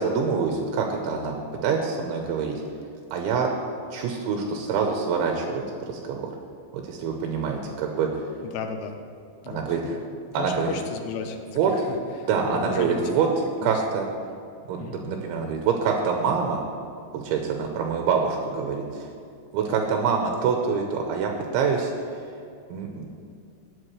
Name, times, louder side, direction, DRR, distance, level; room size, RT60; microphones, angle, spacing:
voice 1, 0.0-1.4 1.6-2.6 3.1-3.5 3.9-6.3 6.7-8.3 9.5-10.0 10.3-10.8 11.6-11.7 12.3-13.3 13.6-14.1 14.7-16.6 17.1-19.1 19.5-21.9 22.7-23.1, right 6 dB, 85° right, 2 dB, 3.3 m, -25 dB
voice 2, 8.4-9.0 9.4-13.3 13.6-13.8 14.8-15.1 19.7-19.8 20.2-20.3, left 6 dB, 85° left, 5 dB, 3.1 m, -35 dB
18.5 x 8.4 x 3.3 m, 2.5 s
omnidirectional pair, 5.3 m